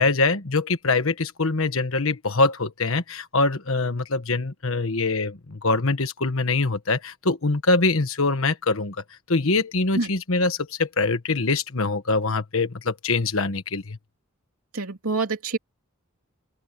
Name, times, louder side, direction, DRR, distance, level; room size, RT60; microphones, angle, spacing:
voice 1, 0.0-9.0 9.3-14.0, left 3 dB, 70° left, 1.4 m, -23 dB
voice 2, 14.7-15.6, right 3 dB, 90° right, 2.9 m, -26 dB
open air
head